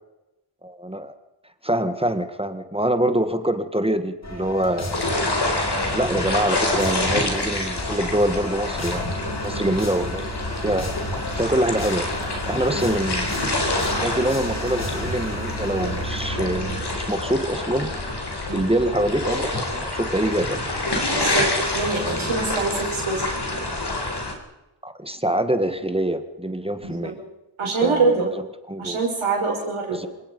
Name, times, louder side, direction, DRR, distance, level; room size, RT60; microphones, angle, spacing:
voice 1, 0.6-1.1 1.6-5.1 5.9-10.9 11.4-12.1 12.5-13.4 14.0-17.9 18.5-20.6 21.9-22.3 24.8-27.2 27.8-29.0 29.9-30.1, right 1 dB, 10° right, 9 dB, 1.6 m, -25 dB
sound 1, 4.2-18.9, equal, 35° left, 3.5 m, -34 dB
sound 2, 4.9-24.3, left 2 dB, 55° left, 4.2 m, -27 dB
sound 3, 12.5-23.3, right 3 dB, 55° right, 6.7 m, -46 dB
voice 2, 21.1-23.4 26.8-27.2 27.6-28.3 28.8-30.0, right 3 dB, 80° right, -2 dB, 5.4 m, -25 dB
27.5 x 17.5 x 5.4 m, 0.98 s
wide cardioid pair, 105°, 48 cm